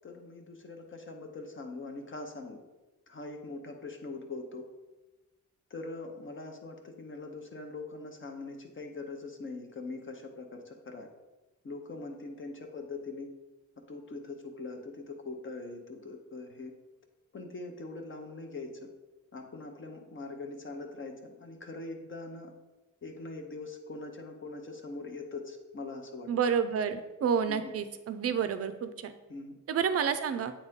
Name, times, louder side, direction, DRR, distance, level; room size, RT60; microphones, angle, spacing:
voice 1, 0.0-2.6 3.1-4.6 5.7-11.1 11.6-13.3 13.8-16.7 17.3-18.9 19.3-22.5 23.0-26.3 27.5-27.7 29.3-29.5, left 3 dB, 40° left, 4 dB, 0.7 m, -42 dB
voice 2, 26.3-29.1 29.7-30.5, right 7 dB, 50° right, 11 dB, 0.5 m, -29 dB
8.5 x 4.0 x 3.6 m, 1.1 s
wide cardioid pair, 155°, 31 cm